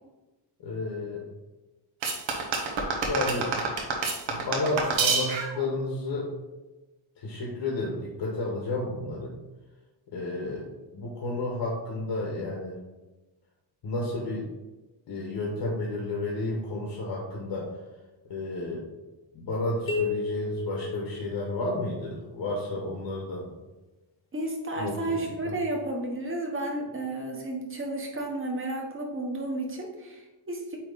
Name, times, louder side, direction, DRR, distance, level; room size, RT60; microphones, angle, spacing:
voice 1, 0.6-1.2 3.0-3.5 4.3-6.3 7.2-9.3 10.1-10.6 10.9-12.8 13.8-14.5 15.1-17.8 18.3-18.9 19.3-23.5 24.8-25.3, left 2 dB, 65° left, -2 dB, 1.3 m, -31 dB
sound 1, 2.0-5.6, right 4 dB, 75° right, 1.2 m, -28 dB
sound 2, 19.9-21.8, left 4 dB, 30° left, 1.1 m, -32 dB
voice 2, 24.3-30.8, right 1 dB, 25° right, 1 dB, 1.1 m, -32 dB
8.7 x 3.1 x 3.9 m, 1.1 s
wide cardioid pair, 170°, 46 cm